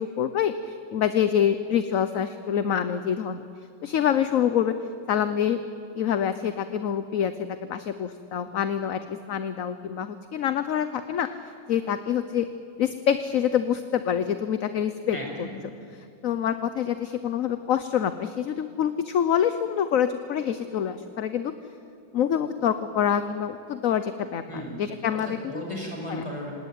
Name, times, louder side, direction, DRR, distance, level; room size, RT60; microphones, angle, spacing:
voice 1, 0.0-3.4 3.8-4.7 5.1-5.6 5.9-11.3 11.7-12.5 12.8-15.2 15.9-21.5 22.1-25.7 26.1-26.2, left 9 dB, 55° left, 11 dB, 1.1 m, -26 dB
voice 2, 15.1-15.6 24.5-24.8 25.1-26.5, left 1 dB, 15° left, -1 dB, 6.2 m, -35 dB
27.0 x 18.5 x 9.3 m, 2.6 s
omnidirectional pair, 1.9 m